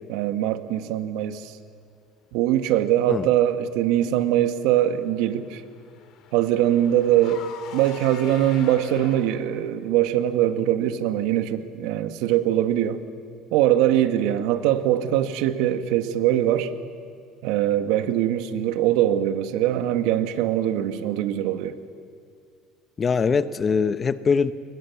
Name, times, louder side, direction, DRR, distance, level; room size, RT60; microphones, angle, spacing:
voice 1, 0.1-1.6 2.3-5.6 6.3-7.4 7.7-13.0 13.5-16.7 17.4-21.7, right 12 dB, 75° right, 8 dB, 1.6 m, -22 dB
Car / Engine, 4.5-9.6, left 7 dB, 65° left, 3.5 m, -44 dB
voice 2, 23.0-24.5, left 5 dB, 35° left, 12 dB, 1.1 m, -22 dB
30.0 x 23.0 x 7.2 m, 2.2 s
supercardioid pair, 90°, 0 cm